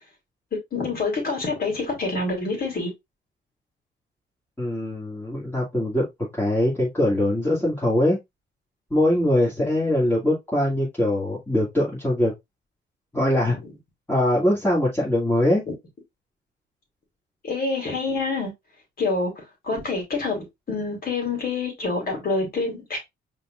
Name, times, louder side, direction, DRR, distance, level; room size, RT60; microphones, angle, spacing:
voice 1, 0.7-2.9 17.4-18.5 19.0-19.3 19.6-23.0, left 3 dB, 50° left, 3.1 m, -26 dB
voice 2, 4.6-6.0 6.3-8.2 8.9-12.3 13.1-13.6 14.1-15.6, left 1 dB, 10° left, 2.3 m, -22 dB
5.6 x 3.8 x 2.4 m
cardioid pair, 90°, 20 cm